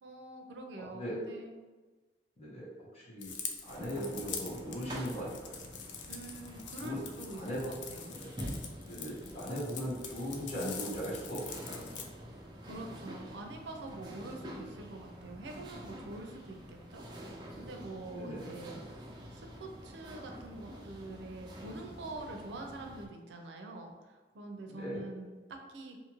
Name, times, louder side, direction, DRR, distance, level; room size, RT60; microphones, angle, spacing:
voice 1, 0.0-1.6 6.1-8.1 12.6-18.8 19.3-25.4 25.7-26.0, right 2 dB, 90° right, 3 dB, 0.5 m, -45 dB
voice 2, 0.8-1.2 2.4-3.3 3.6-5.7 6.8-7.0 7.3-8.3 8.8-12.1 18.1-18.5 24.7-25.1, equal, 35° left, -7 dB, 1.0 m, -39 dB
sound 1, 3.2-12.0, left 6 dB, 85° left, 0.4 m, -45 dB
sound 2, 3.7-23.1, equal, 25° right, 0.4 m, -47 dB
2.6 x 2.5 x 2.9 m, 1.3 s
head